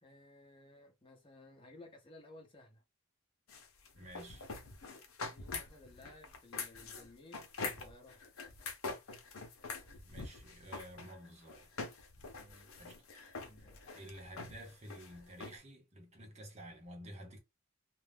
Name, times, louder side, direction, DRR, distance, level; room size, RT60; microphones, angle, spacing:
voice 1, 0.0-2.8 5.3-8.2 12.4-12.7 13.4-13.8, left 2 dB, 25° left, 0.9 m, -57 dB
sound 1, 3.5-15.6, left 4 dB, 85° left, 0.8 m, -45 dB
voice 2, 4.0-4.5 10.0-11.7 12.8-13.0 13.9-17.4, equal, 30° right, 0.9 m, -51 dB
2.6 x 2.2 x 3.4 m
head